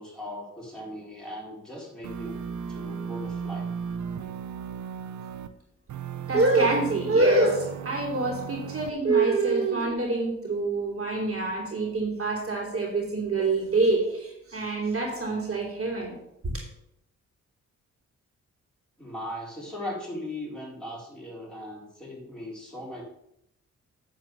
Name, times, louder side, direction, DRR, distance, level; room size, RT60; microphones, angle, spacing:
voice 1, 0.0-2.3 2.7-3.7 19.0-23.0, left 1 dB, 5° left, -5 dB, 4.2 m, -38 dB
sound 1, 2.0-5.5 5.9-8.9, right 7 dB, 70° right, 0.8 m, -36 dB
voice 2, 6.3-16.1 16.4-16.6, right 3 dB, 45° right, -2 dB, 3.2 m, -25 dB
9.4 x 4.4 x 6.8 m, 0.79 s
cardioid pair, 80°, 30 cm